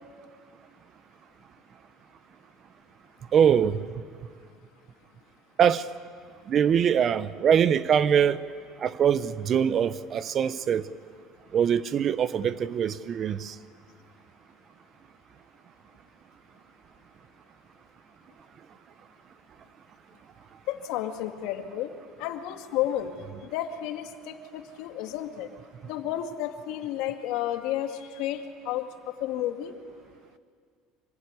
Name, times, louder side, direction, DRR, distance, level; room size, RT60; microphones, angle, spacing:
voice 1, 3.3-3.8 5.6-5.9 6.5-8.4 8.8-10.9 11.5-13.5, right 8 dB, 40° right, 0.9 m, -23 dB
voice 2, 20.7-21.9 22.2-23.1 23.4-25.5 25.8-29.7, left 12 dB, 75° left, 2.2 m, -32 dB
25.5 x 23.5 x 9.8 m
cardioid pair, 125°, 0 cm